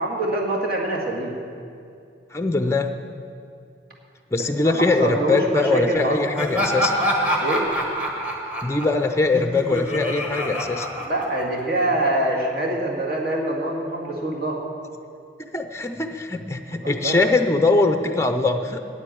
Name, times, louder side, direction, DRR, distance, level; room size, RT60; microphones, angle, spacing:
voice 1, 0.0-1.4 4.6-6.5 7.4-7.7 11.0-14.6 16.8-17.2, right 1 dB, 55° right, -2 dB, 2.1 m, -25 dB
voice 2, 2.3-2.9 4.3-6.9 8.6-10.9 15.4-18.8, left 3 dB, 15° left, 6 dB, 0.5 m, -22 dB
Laughter, 6.4-11.8, equal, 10° right, 1.3 m, -26 dB
9.2 x 8.0 x 9.1 m, 2.4 s
head